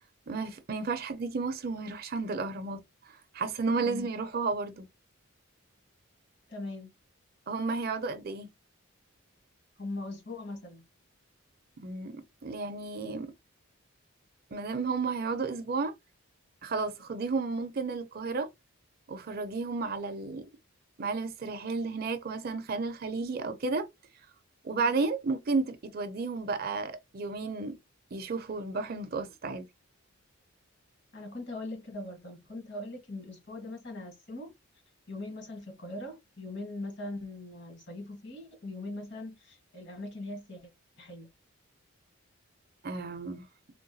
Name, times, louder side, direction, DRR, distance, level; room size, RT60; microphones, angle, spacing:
voice 1, 0.3-2.8 3.3-4.9 7.5-8.5 11.8-13.3 14.5-15.9 16.6-18.5 19.1-20.4 21.0-23.9 24.6-27.7 28.1-29.6 42.8-43.5, right 4 dB, 45° right, 0.4 m, -32 dB
voice 2, 6.5-6.9 9.8-10.8 24.7-25.0 31.1-34.5 35.1-40.6 41.0-41.3, left 2 dB, 55° left, 1.3 m, -41 dB
3.7 x 2.2 x 2.6 m
head